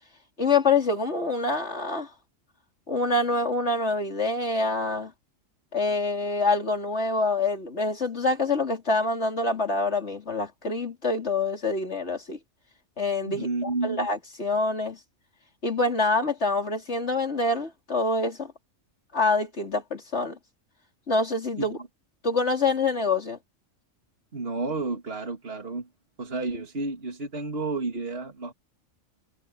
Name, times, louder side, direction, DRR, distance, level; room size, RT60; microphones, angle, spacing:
voice 1, 0.4-2.1 2.9-5.1 5.7-12.4 13.0-15.0 15.6-18.5 19.1-20.4 21.1-21.8 22.2-23.4, left 3 dB, 55° left, 3.7 m, -26 dB
voice 2, 13.3-14.1 21.6-21.7 24.3-25.9 26.2-28.5, right 3 dB, 50° right, 2.8 m, -31 dB
omnidirectional pair, 1.4 m